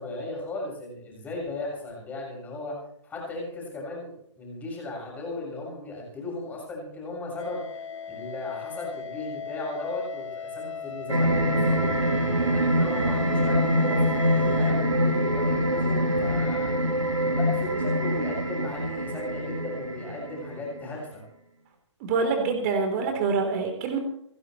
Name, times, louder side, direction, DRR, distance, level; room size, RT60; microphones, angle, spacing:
voice 1, 0.0-2.8 3.0-7.6 8.1-12.0 12.4-16.7 17.2-21.2, left 2 dB, 10° left, -3 dB, 7.0 m, -36 dB
sound 1, 7.4-14.7, left 6 dB, 80° left, 2.8 m, -37 dB
sound 2, 11.1-20.9, equal, 85° right, 3.1 m, -25 dB
voice 2, 22.0-24.0, right 4 dB, 30° right, 4 dB, 3.5 m, -25 dB
29.0 x 12.0 x 3.2 m, 0.72 s
figure-of-eight pair, 140°, 16 cm